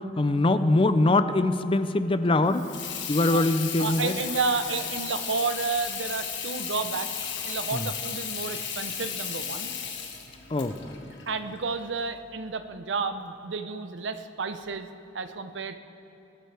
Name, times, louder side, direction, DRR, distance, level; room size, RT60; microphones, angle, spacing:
voice 1, 0.0-2.7 3.1-4.1 7.7-7.9 10.5-11.2, left 2 dB, 30° left, 11 dB, 0.5 m, -23 dB
Water tap faucet / Sink (filling or washing), 2.4-12.0, left 7 dB, 80° left, 1.6 m, -35 dB
voice 2, 3.8-7.1 7.4-9.7 11.3-14.9 15.1-15.8, right 4 dB, 90° right, 9 dB, 0.7 m, -31 dB
21.0 x 12.5 x 3.4 m, 3.0 s
head